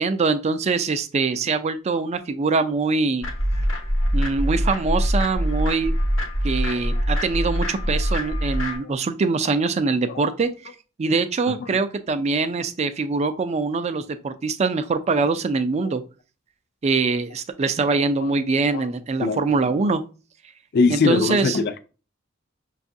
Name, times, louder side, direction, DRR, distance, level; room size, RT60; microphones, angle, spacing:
voice 1, 0.0-3.3 4.1-5.9 6.4-10.5 11.0-16.0 16.8-20.0 20.9-21.6, right 4 dB, 35° right, 10 dB, 0.3 m, -23 dB
sound 1, 3.2-8.8, equal, 90° left, 0.9 m, -23 dB
voice 2, 20.7-21.8, left 4 dB, 55° left, 11 dB, 0.4 m, -22 dB
5.9 x 2.3 x 2.6 m, 0.35 s
head